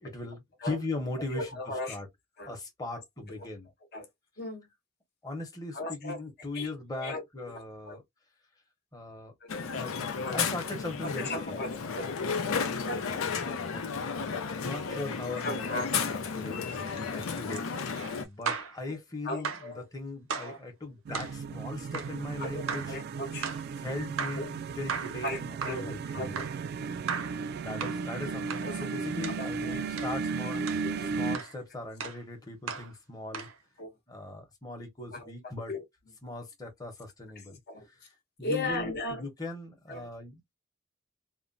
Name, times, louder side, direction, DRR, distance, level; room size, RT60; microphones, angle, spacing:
voice 1, 0.0-1.5 1.9-2.1 2.4-3.7 5.2-8.0 8.9-9.3 9.8-10.0 10.3-11.7 13.4-13.8 14.6-17.7 18.2-23.0 23.8-26.4 27.6-30.7 31.1-33.5 34.1-35.7 36.2-37.6 37.9-38.1 38.4-40.5, left 2 dB, 20° left, 0.9 m, -39 dB
voice 2, 1.3-2.0 2.4-2.5 3.4-3.5 3.9-4.1 4.4-4.6 5.7-6.2 6.5-7.2 7.9-8.0 9.4-9.5 10.2-10.4 11.2-12.2 12.9-13.2 15.4-16.3 17.3-17.4 18.0-18.1 18.9-19.0 19.2-19.8 20.4-20.6 22.4-23.5 24.4-24.5 25.2-26.5 28.6-28.9 29.4-29.8 30.5-31.1 33.8-33.9 35.1-35.3 35.7-35.8 37.7-37.9 38.4-39.2 39.9-40.1, left 2 dB, 50° left, 0.8 m, -37 dB
Crowd, 9.5-18.2, left 5 dB, 90° left, 0.6 m, -33 dB
sound 1, 16.6-18.8 19.4-19.7 20.3-20.6 21.1-21.4 21.9-22.2 22.7-23.0 23.4-23.7 24.2-24.5 24.9-25.2 25.6-25.9 26.4-26.6 27.1-27.4 27.8-28.0 28.5-28.7 29.2-29.4 30.0-30.2 30.7-30.9 31.3-31.6 32.0-32.2 32.7-32.9 33.3-33.6, right 6 dB, 80° right, 0.7 m, -36 dB
sound 2, 21.1-31.4, right 5 dB, 50° right, 0.3 m, -35 dB
2.9 x 2.2 x 2.6 m
head